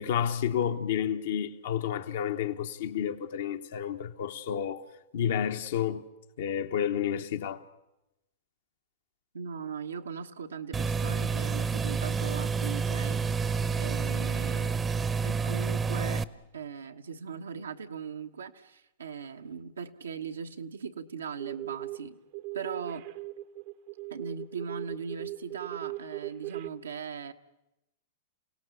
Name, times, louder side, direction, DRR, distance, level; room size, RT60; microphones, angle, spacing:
voice 1, 0.0-4.8 5.1-6.1 6.4-7.6, left 9 dB, 70° left, 1.2 m, -30 dB
voice 2, 9.3-13.2 13.8-14.8 15.2-16.2 16.5-22.2 22.5-23.0 24.1-27.3, right 6 dB, 90° right, 1.2 m, -39 dB
sound 1, 10.7-16.2, right 5 dB, 15° right, 0.8 m, -29 dB
sound 2, 21.4-22.0 22.3-26.7, right 17 dB, 55° right, 0.8 m, -39 dB
28.0 x 17.5 x 8.3 m
hypercardioid pair, 115°, 0 cm